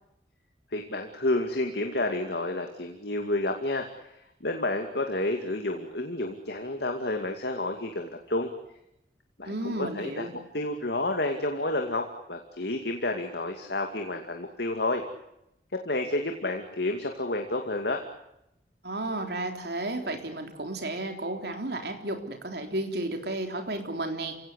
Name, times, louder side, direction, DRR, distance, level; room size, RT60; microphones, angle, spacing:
voice 1, 0.7-3.9 4.4-8.5 9.4-10.2 10.5-15.0 15.7-18.0, left 2 dB, 65° left, 4 dB, 2.5 m, -30 dB
voice 2, 9.4-10.3 18.8-24.4, right 1 dB, 65° right, 5 dB, 3.7 m, -33 dB
29.0 x 17.5 x 8.2 m, 0.83 s
head